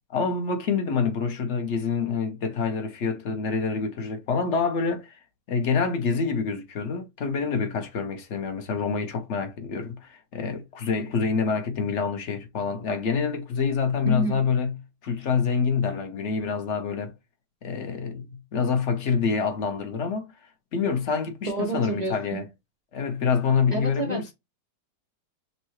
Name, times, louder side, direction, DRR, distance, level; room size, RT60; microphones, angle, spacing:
voice 1, 0.1-5.2 5.5-17.1 17.6-18.3 18.5-20.3 20.7-22.5 22.9-24.3, left 5 dB, 50° left, 0.9 m, -26 dB
voice 2, 14.0-14.4 21.4-22.4 23.7-24.3, right 2 dB, 75° right, 0.3 m, -29 dB
5.5 x 2.2 x 3.0 m
omnidirectional pair, 2.1 m